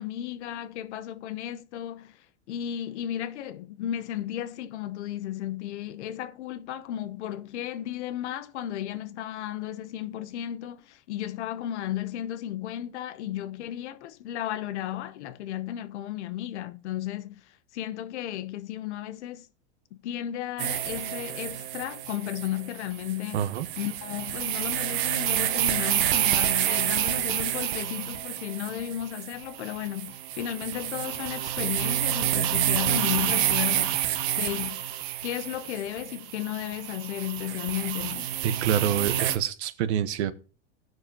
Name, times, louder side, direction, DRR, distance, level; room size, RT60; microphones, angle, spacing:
voice 1, 0.0-2.2 2.5-17.4 17.7-19.5 19.9-23.5 23.8-33.9 34.4-34.8 35.2-38.3, left 12 dB, 80° left, 0.9 m, -34 dB
sound 1, 20.6-39.4, right 11 dB, 45° right, 0.9 m, -29 dB
voice 2, 23.3-23.7 38.4-40.3, right 9 dB, 70° right, 1.1 m, -27 dB
18.5 x 6.4 x 2.8 m
supercardioid pair, 160°, 34 cm